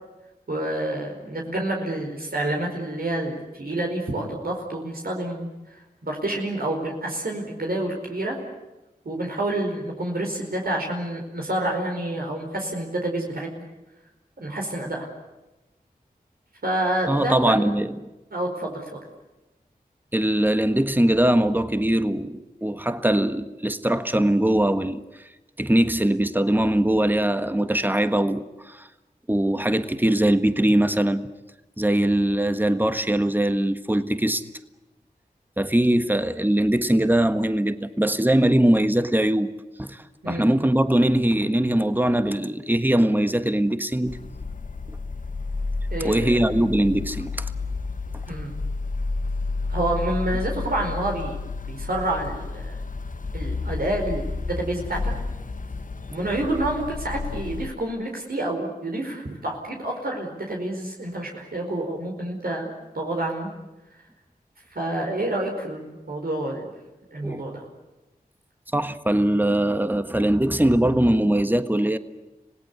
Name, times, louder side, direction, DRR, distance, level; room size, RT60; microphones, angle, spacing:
voice 1, 0.5-8.4 9.0-13.5 14.4-15.1 16.6-17.7 18.3-18.8 40.2-40.5 45.9-46.3 48.3-48.6 49.7-51.4 51.7-52.8 53.3-55.0 56.1-63.5 64.7-66.7 67.1-67.6, right 1 dB, 70° right, 4.7 m, -28 dB
voice 2, 17.1-18.1 20.1-25.0 25.6-28.9 29.3-31.3 31.8-34.4 35.6-39.5 39.8-44.2 44.9-45.0 46.0-47.5 67.2-67.4 68.7-72.0, right 1 dB, 10° right, 1.4 m, -21 dB
sound 1, 44.1-57.7, left 3 dB, 55° left, 1.0 m, -31 dB
27.0 x 18.0 x 9.6 m
cardioid pair, 40°, 16 cm